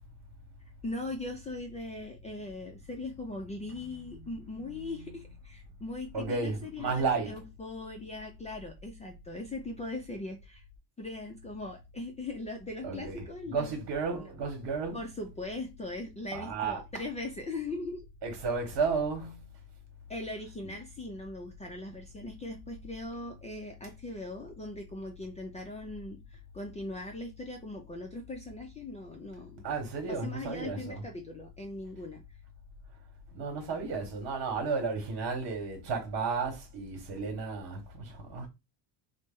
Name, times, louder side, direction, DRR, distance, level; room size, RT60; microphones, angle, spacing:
voice 1, 0.8-10.6 11.0-13.8 14.9-18.0 20.1-29.7 30.1-32.2, left 2 dB, 15° left, 0.3 m, -40 dB
voice 2, 3.8-4.3 4.6-5.1 6.1-7.4 12.8-15.0 16.3-16.8 18.2-19.5 20.6-20.7 29.6-31.0 33.3-38.5, right 4 dB, 55° right, 1.2 m, -33 dB
3.0 x 2.1 x 3.5 m
cardioid pair, 125°, 45 cm